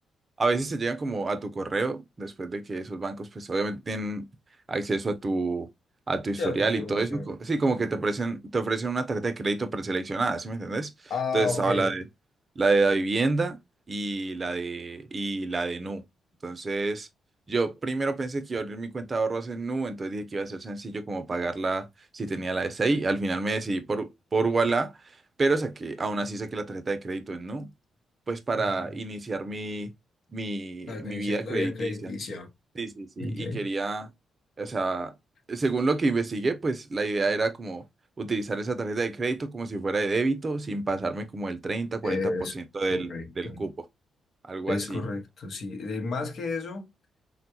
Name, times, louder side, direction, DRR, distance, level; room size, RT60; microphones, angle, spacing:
voice 1, 0.4-4.2 4.7-5.7 6.1-10.9 11.3-12.0 12.6-13.6 13.9-16.0 16.4-17.1 17.5-21.9 22.1-24.9 25.4-27.7 28.3-29.9 30.3-32.1 32.8-34.1 34.6-35.1 35.5-37.8 38.2-42.2 42.5-43.1 43.4-43.7 44.4-45.0, right 3 dB, 40° right, 0.6 m, -28 dB
voice 2, 6.4-7.3 11.1-12.0 28.6-28.9 30.9-32.5 33.2-33.7 42.0-42.5 42.9-43.6 44.7-46.9, left 3 dB, 65° left, 0.8 m, -32 dB
3.5 x 2.2 x 2.8 m
supercardioid pair, 60°, 0 cm